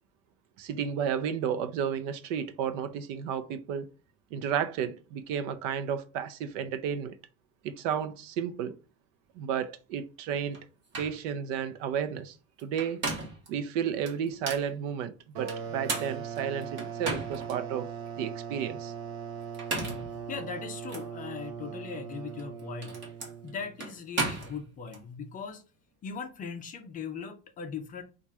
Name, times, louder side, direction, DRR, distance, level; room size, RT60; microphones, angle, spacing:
voice 1, 0.6-3.9 4.3-7.2 7.6-8.8 9.4-10.6 11.0-13.0 13.5-17.9 18.2-18.9, right 8 dB, 90° right, 0.7 m, -32 dB
sound 1, 10.5-10.6 10.9-11.2 12.6-13.5 14.1-14.7 15.5-17.5 18.1-18.2 19.4-20.1 20.9-21.1 22.3-25.0, right 3 dB, 30° right, 1.4 m, -35 dB
sound 2, 15.3-23.7, right 7 dB, 55° right, 0.9 m, -39 dB
voice 2, 19.8-23.0 23.4-25.6 26.0-28.0, left 6 dB, 25° left, 0.4 m, -39 dB
4.2 x 2.5 x 4.7 m
cardioid pair, 170°, 37 cm